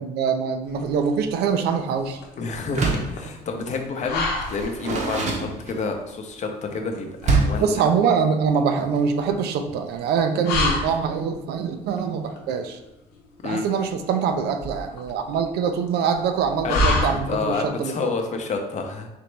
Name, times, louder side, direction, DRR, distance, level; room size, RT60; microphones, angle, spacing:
voice 1, 0.0-2.2 7.6-12.8 13.4-18.1, right 6 dB, 75° right, 6 dB, 0.5 m, -24 dB
sound 1, 0.6-17.7, left 2 dB, 90° left, 0.8 m, -30 dB
voice 2, 2.4-7.8 13.4-13.7 16.6-19.1, left 4 dB, 45° left, 4 dB, 0.6 m, -29 dB
Door, 2.7-3.2 4.4-6.0 7.2-7.7, right 3 dB, 45° right, 0.8 m, -24 dB
4.2 x 3.0 x 3.3 m, 0.96 s
cardioid pair, 110°, 17 cm